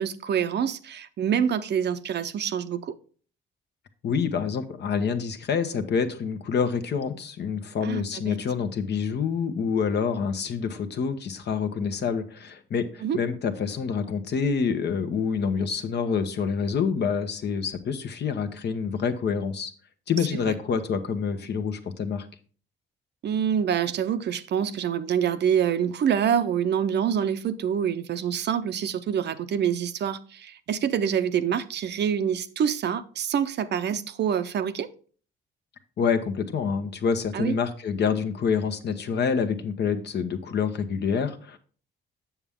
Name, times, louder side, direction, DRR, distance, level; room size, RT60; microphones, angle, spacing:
voice 1, 0.0-2.9 7.8-8.4 13.0-13.2 20.5-20.6 23.2-34.9 37.3-37.5, right 8 dB, 60° right, 0.7 m, -26 dB
voice 2, 4.0-19.7 20.1-22.3 36.0-41.6, left 6 dB, 60° left, 1.0 m, -27 dB
7.2 x 7.0 x 3.6 m
cardioid pair, 90°, 20 cm